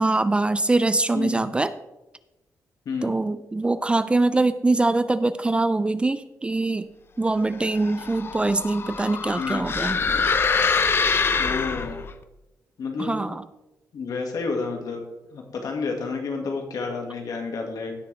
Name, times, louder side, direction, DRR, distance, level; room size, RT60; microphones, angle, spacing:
voice 1, 0.0-1.7 3.0-6.9 7.2-10.0 13.0-13.4, right 2 dB, 15° right, 13 dB, 0.4 m, -23 dB
voice 2, 1.1-1.5 2.9-3.1 9.4-9.7 11.4-12.0 12.8-13.2 13.9-15.0 15.3-17.9, left 4 dB, 70° left, 3 dB, 1.9 m, -30 dB
sound 1, 7.7-12.1, left 5 dB, 35° left, 0.6 m, -24 dB
16.5 x 6.3 x 3.4 m, 0.99 s
wide cardioid pair, 125°, 6 cm